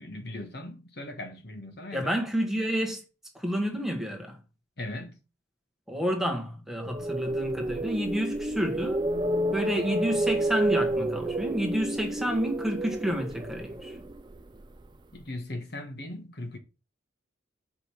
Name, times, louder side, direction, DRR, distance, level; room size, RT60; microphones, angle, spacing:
voice 1, 0.0-2.1 4.8-5.2 15.1-16.6, left 1 dB, 55° left, 1.4 m, -38 dB
voice 2, 1.9-3.0 3.3-4.4 5.9-9.0 9.5-14.0, equal, ahead, 1.4 m, -30 dB
sound 1, 6.8-14.9, right 1 dB, 25° right, 0.5 m, -30 dB
6.1 x 5.2 x 5.9 m
head